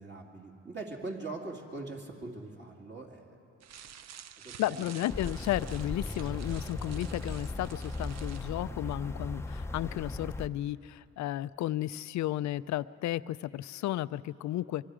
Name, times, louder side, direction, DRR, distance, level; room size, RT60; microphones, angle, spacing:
voice 1, 0.0-3.3 4.4-4.9, right 3 dB, 35° right, 0 dB, 2.7 m, -42 dB
sound 1, 3.6-8.6, right 9 dB, 60° right, 0.7 m, -50 dB
voice 2, 4.6-14.8, left 14 dB, 70° left, 17 dB, 0.5 m, -33 dB
sound 2, 5.1-10.5, left 2 dB, 10° left, 0.7 m, -38 dB
24.0 x 23.5 x 5.0 m, 2.6 s
cardioid pair, 90°, 30 cm